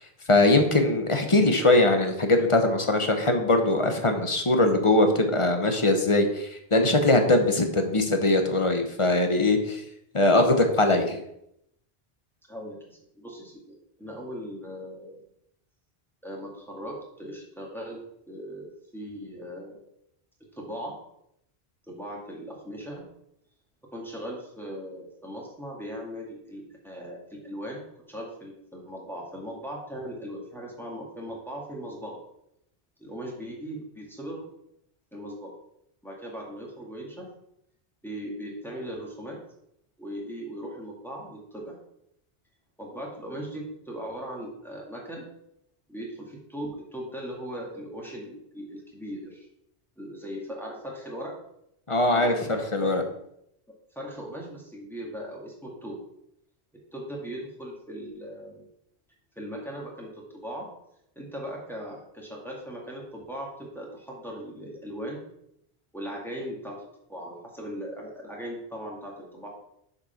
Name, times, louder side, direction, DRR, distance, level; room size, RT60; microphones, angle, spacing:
voice 1, 0.3-9.8 10.1-11.2 51.9-53.0, left 2 dB, 30° left, 5 dB, 1.0 m, -21 dB
voice 2, 12.5-15.2 16.2-18.0 18.3-19.8 20.6-20.9 21.9-23.1 23.9-27.8 28.1-32.2 33.0-34.5 35.1-35.5 36.0-37.3 38.0-39.4 40.0-41.8 42.8-45.2 45.9-49.5 50.0-51.3 52.1-53.0 54.0-56.0 56.9-58.7 59.4-60.7 61.2-65.2 65.9-69.5, equal, ahead, -3 dB, 2.1 m, -38 dB
6.8 x 5.5 x 5.8 m, 0.76 s
omnidirectional pair, 1.1 m